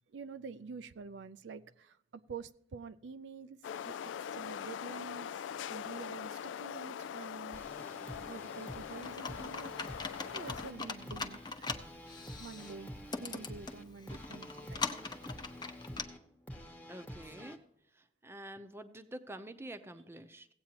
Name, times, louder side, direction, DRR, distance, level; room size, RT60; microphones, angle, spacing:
voice 1, 0.1-3.6 3.8-4.0 4.3-7.6 8.3-9.7 10.3-14.8, right 5 dB, 75° right, 11 dB, 0.4 m, -48 dB
sound 1, 3.6-10.7, left 8 dB, 90° left, 0.3 m, -42 dB
sound 2, 7.5-17.6, equal, 10° left, 1.1 m, -48 dB
Computer keyboard, 9.0-16.0, left 4 dB, 25° left, 0.7 m, -42 dB
voice 2, 16.9-17.6 17.9-20.5, right 1 dB, 15° right, 8 dB, 0.7 m, -47 dB
17.0 x 8.5 x 2.9 m, 0.74 s
head